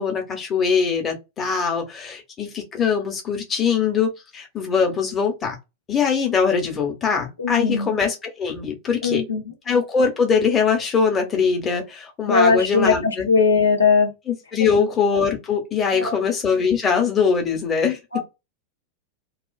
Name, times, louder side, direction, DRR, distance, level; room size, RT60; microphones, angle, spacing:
voice 1, 0.0-5.6 5.9-9.2 9.7-13.3 14.3-18.0, left 6 dB, 20° left, 0.8 m, -22 dB
voice 2, 7.4-7.9 9.0-9.4 12.3-14.1 15.9-16.2 18.1-18.2, left 5 dB, 75° left, 0.6 m, -19 dB
2.4 x 2.3 x 2.3 m
figure-of-eight pair, 90°, 0 cm